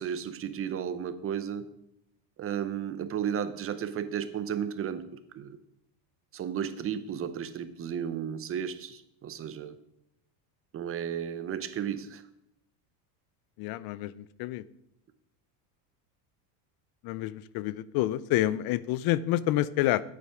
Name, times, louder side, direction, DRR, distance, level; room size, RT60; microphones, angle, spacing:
voice 1, 0.0-1.7 2.4-5.6 6.3-9.8 10.7-12.2, right 8 dB, 30° right, 12 dB, 0.7 m, -34 dB
voice 2, 13.6-14.6 17.0-20.0, left 15 dB, 50° left, 19 dB, 0.5 m, -28 dB
9.1 x 8.5 x 5.0 m, 0.80 s
cardioid pair, 140°, 47 cm